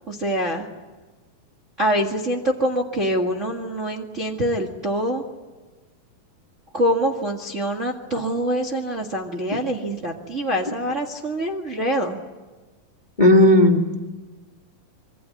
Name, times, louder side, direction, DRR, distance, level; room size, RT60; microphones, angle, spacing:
voice 1, 0.1-0.7 1.8-5.2 6.7-12.2, equal, 30° right, 1 dB, 1.5 m, -25 dB
voice 2, 13.2-14.0, left 1 dB, 20° left, 2 dB, 1.2 m, -14 dB
26.0 x 24.0 x 8.6 m, 1.3 s
omnidirectional pair, 4.0 m